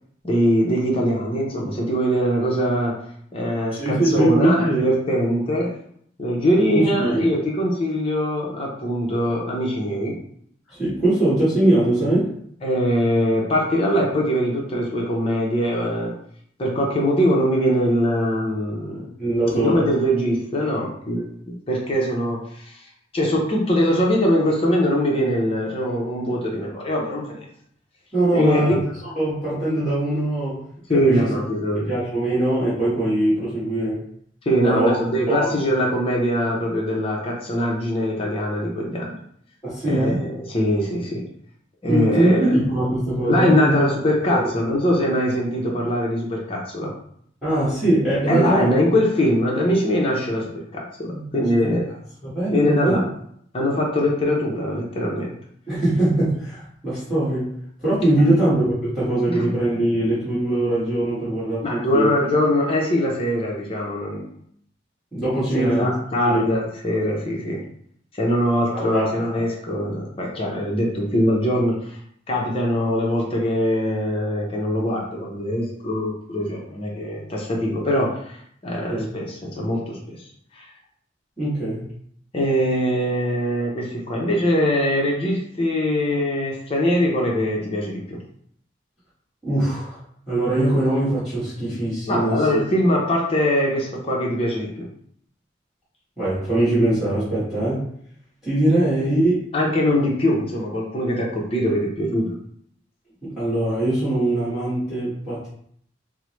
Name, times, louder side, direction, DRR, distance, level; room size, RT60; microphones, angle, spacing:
voice 1, 0.2-3.0 3.3-5.7 6.2-10.2 12.6-16.1 16.6-19.1 19.5-27.4 28.3-28.8 30.9-31.9 34.5-39.1 39.8-41.3 41.8-42.5 43.3-46.9 48.3-51.9 52.5-53.1 53.5-55.3 58.2-58.3 59.4-59.5 61.6-64.3 65.5-67.6 68.1-72.0 72.3-80.3 80.5-80.7 82.3-88.2 92.1-94.9 99.5-102.3, equal, 30° left, -2 dB, 0.6 m, -22 dB
voice 2, 3.8-4.8 6.7-7.3 10.7-12.3 19.2-19.9 21.2-21.3 28.1-30.6 31.1-31.3 31.9-34.0 34.6-35.6 39.6-40.2 41.9-43.8 44.3-44.4 47.4-48.7 51.1-51.7 52.2-53.0 55.7-57.5 57.8-62.1 65.1-65.9 66.2-66.5 68.7-69.0 78.9-79.1 81.4-81.8 89.4-90.0 90.3-92.4 96.2-97.8 98.4-99.4 103.4-105.5, right 1 dB, ahead, -12 dB, 1.3 m, -21 dB
4.6 x 2.0 x 3.0 m, 0.66 s
head